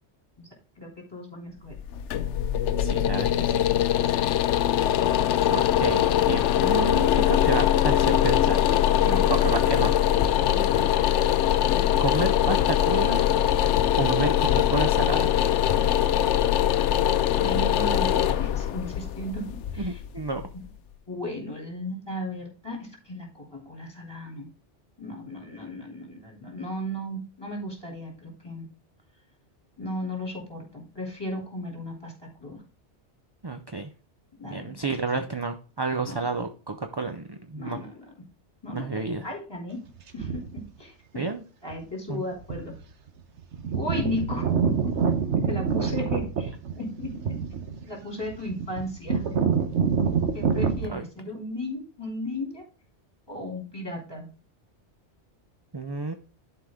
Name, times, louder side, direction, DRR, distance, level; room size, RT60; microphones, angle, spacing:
voice 1, 0.8-1.7 9.0-9.3 10.5-11.0 11.4-12.0 17.4-20.0 20.5-20.7 21.1-24.5 25.0-28.7 29.8-32.1 32.4-32.6 34.4-35.2 36.1-36.2 37.6-38.0 38.6-39.8 40.1-41.2 41.6-42.7 43.7-44.9 45.4-47.4 47.8-49.8 50.3-52.6 53.3-54.3, left 1 dB, 20° left, 0 dB, 3.0 m, -36 dB
sound 1, 1.7-20.7, left 11 dB, 80° left, 0.9 m, -22 dB
voice 2, 2.8-3.6 5.5-8.7 9.3-9.9 12.0-13.2 14.0-15.3 19.8-20.4 33.4-33.9 34.5-37.8 38.7-39.3 41.1-41.4 42.1-42.2 50.9-51.0 55.7-56.1, right 3 dB, 30° right, 7 dB, 0.5 m, -30 dB
sound 2, 40.2-40.6 41.7-41.8 42.4-42.8 43.1-43.2 43.4-50.9, right 6 dB, 75° right, 1.3 m, -26 dB
11.5 x 4.8 x 3.6 m, 0.36 s
omnidirectional pair, 1.2 m